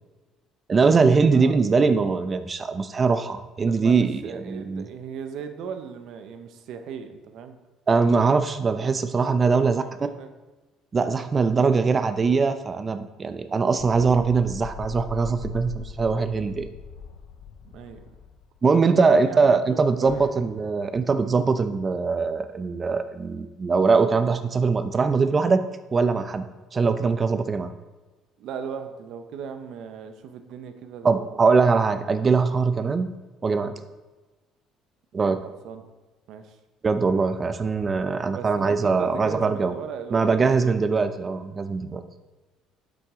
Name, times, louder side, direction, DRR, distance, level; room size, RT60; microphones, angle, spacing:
voice 1, 0.7-4.9 7.9-9.8 10.9-16.7 18.6-25.6 25.9-27.7 31.0-33.1 33.4-33.7 35.1-35.4 36.8-39.7 40.1-42.0, right 4 dB, 30° right, 10 dB, 0.6 m, -22 dB
voice 2, 1.2-1.6 3.6-7.6 9.8-10.3 17.7-18.0 18.9-20.4 28.4-31.5 32.8-32.9 35.4-35.8 36.3-36.6 38.3-40.9, right 7 dB, 70° right, 8 dB, 0.9 m, -37 dB
sound 1, 13.8-18.7 20.0-20.3, left 7 dB, 75° left, 0.7 m, -40 dB
8.8 x 7.8 x 3.7 m, 1.2 s
supercardioid pair, 90°, 0 cm